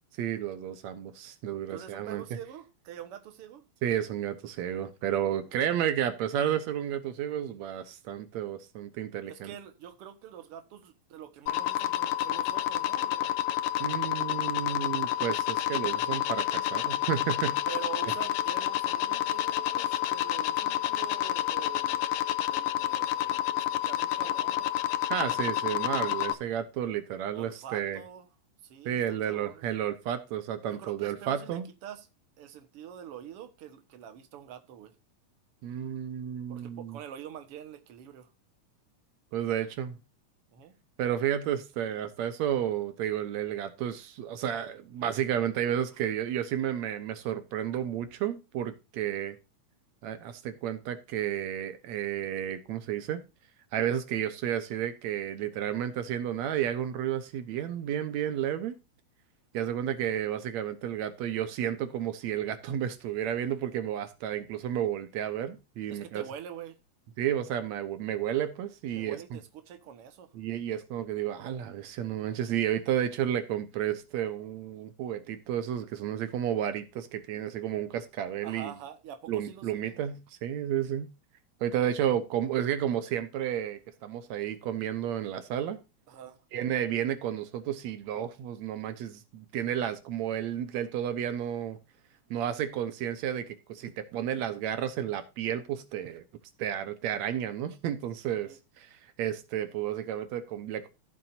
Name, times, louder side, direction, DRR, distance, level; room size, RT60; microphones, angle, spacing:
voice 1, 0.2-2.2 3.8-9.6 13.8-17.6 25.1-28.0 28.9-31.7 35.6-37.0 39.3-40.0 41.0-49.4 50.0-53.2 53.7-58.8 59.5-66.3 67.2-69.4 70.3-78.7 79.3-81.1 81.6-85.8 86.5-91.8 92.3-96.2 96.6-98.9 99.2-100.9, right 10 dB, 75° right, 2.1 m, -32 dB
voice 2, 1.7-3.6 9.2-13.3 14.0-14.1 17.7-22.0 22.5-24.7 27.3-28.3 28.6-29.7 30.7-32.1 32.4-34.9 36.5-38.3 40.5-40.7 59.6-59.7 65.9-66.8 69.0-70.3 78.4-80.0 86.1-86.4 98.4-98.6, right 9 dB, 60° right, 2.0 m, -45 dB
sound 1, 11.5-26.3, left 13 dB, 75° left, 1.4 m, -29 dB
15.5 x 7.6 x 2.6 m
omnidirectional pair, 3.3 m